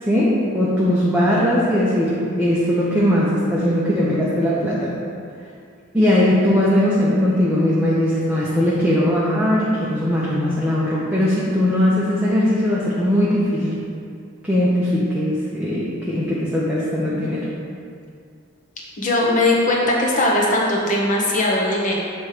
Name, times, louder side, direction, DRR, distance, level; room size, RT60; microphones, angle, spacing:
voice 1, 0.0-4.9 5.9-13.8 14.4-17.5, left 1 dB, 5° right, -8 dB, 0.7 m, -19 dB
voice 2, 19.0-22.0, left 1 dB, 35° left, -3 dB, 1.0 m, -19 dB
7.3 x 3.1 x 4.9 m, 2.3 s
head